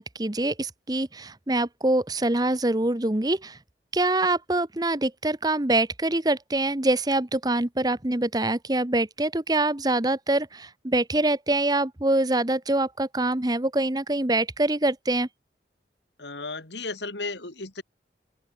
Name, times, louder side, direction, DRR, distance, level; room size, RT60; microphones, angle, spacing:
voice 1, 0.0-3.6 3.9-15.3, right 2 dB, 20° right, 1.0 m, -25 dB
voice 2, 16.2-17.8, left 3 dB, 80° left, 4.0 m, -34 dB
open air
head